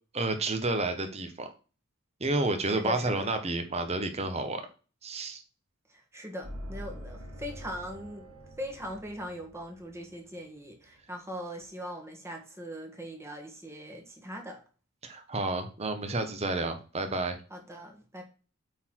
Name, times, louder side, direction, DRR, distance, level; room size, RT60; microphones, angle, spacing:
voice 1, 0.1-1.5 2.2-4.6 5.0-5.4 15.0-17.4, right 2 dB, 30° right, 7 dB, 1.2 m, -30 dB
voice 2, 2.6-3.3 5.9-8.3 8.6-14.6 17.5-18.2, equal, 10° right, 2 dB, 1.5 m, -40 dB
sound 1, 6.4-11.2, equal, 80° right, 4.1 m, -45 dB
8.3 x 4.0 x 4.6 m, 0.35 s
head